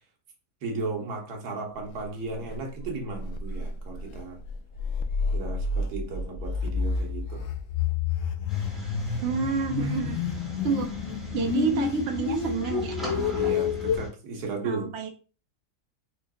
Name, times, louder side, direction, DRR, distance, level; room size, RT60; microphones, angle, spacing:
voice 1, 0.6-4.4 5.3-7.4 11.4-11.5 13.3-14.9, right 3 dB, 85° right, 1.4 m, -35 dB
sound 1, 2.0-2.1 2.4-2.6 2.8-2.9 3.1-14.0, left 5 dB, 70° left, 0.8 m, -29 dB
sound 2, 8.5-14.1, left 2 dB, ahead, 1.2 m, -37 dB
voice 2, 9.2-10.2 10.6-10.9 11.3-13.0 14.6-15.1, right 5 dB, 60° right, 0.8 m, -28 dB
4.4 x 2.7 x 2.3 m
omnidirectional pair, 1.6 m